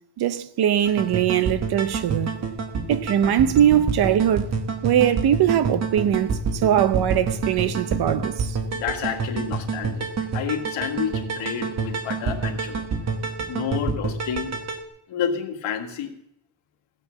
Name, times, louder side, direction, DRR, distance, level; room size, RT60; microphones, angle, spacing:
voice 1, 0.2-2.3 2.9-4.5 4.8-8.6, right 10 dB, 50° right, 0.7 m, -21 dB
sound 1, 0.8-14.8, right 4 dB, 30° right, 1.2 m, -28 dB
voice 2, 8.7-12.8 13.5-14.6 15.1-16.1, left 8 dB, 65° left, 1.9 m, -30 dB
15.5 x 8.5 x 6.8 m
cardioid pair, 170°, 49 cm